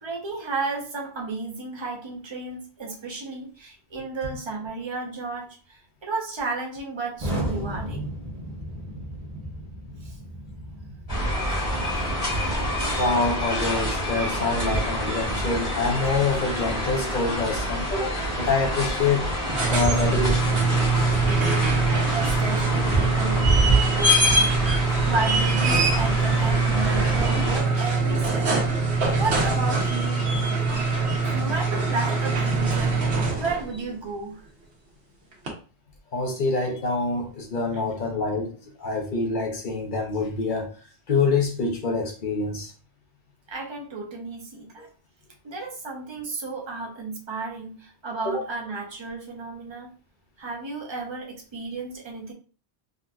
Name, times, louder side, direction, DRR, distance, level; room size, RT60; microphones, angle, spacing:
voice 1, 0.0-8.1 10.0-10.2 11.9-12.1 21.5-24.5 25.0-30.2 31.1-34.4 43.5-44.9 45.4-49.9 50.4-52.3, right 3 dB, 30° right, 0.7 m, -33 dB
Explosion, 7.2-17.1, equal, 45° right, 1.3 m, -36 dB
sound 1, 11.1-27.6, right 1 dB, 35° left, 1.3 m, -27 dB
voice 2, 13.0-19.3 19.7-20.7 36.1-40.7 41.1-42.7 48.2-48.4, left 3 dB, 55° left, 0.9 m, -26 dB
sound 2, 19.3-33.7 35.5-35.6, right 3 dB, 85° right, 1.2 m, -23 dB
3.8 x 2.6 x 2.3 m
omnidirectional pair, 1.1 m